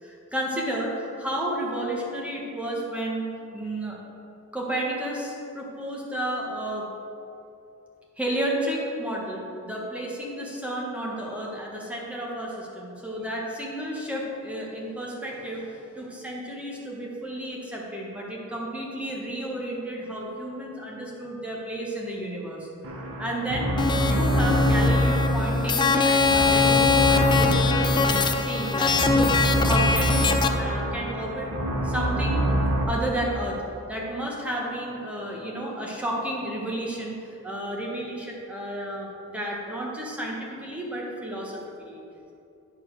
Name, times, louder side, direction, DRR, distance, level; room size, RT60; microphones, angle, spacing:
voice 1, 0.0-4.0 4.5-6.9 8.2-22.7 23.2-23.7 24.0-29.3 29.6-30.2 30.6-31.5 31.8-32.4 32.9-33.6 33.9-42.0, right 1 dB, 5° right, -3 dB, 1.4 m, -32 dB
sound 1, 22.8-32.8, equal, 65° right, 1.1 m, -25 dB
sound 2, 23.8-30.5, left 5 dB, 20° left, 0.4 m, -23 dB
9.9 x 4.5 x 6.2 m, 2.7 s
head